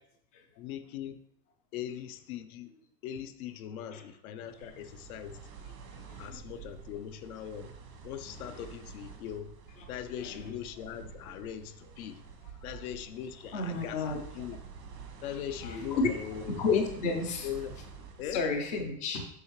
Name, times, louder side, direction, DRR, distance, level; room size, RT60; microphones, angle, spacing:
voice 1, 0.6-1.2 1.7-2.7 3.0-5.4 6.2-7.7 8.0-9.5 9.9-12.2 12.6-14.6 15.2-16.6 17.4-17.8 18.2-18.4, left 10 dB, 60° left, 9 dB, 0.7 m, -40 dB
sound 1, 4.4-18.8, right 5 dB, 85° right, 1.7 m, -49 dB
voice 2, 5.9-6.4 10.2-10.5 11.3-11.4 13.5-14.2 15.3-16.1 16.6-17.5 18.3-19.3, left 4 dB, 15° left, 3 dB, 0.4 m, -32 dB
7.9 x 5.6 x 3.1 m, 0.70 s
supercardioid pair, 150°, 50 cm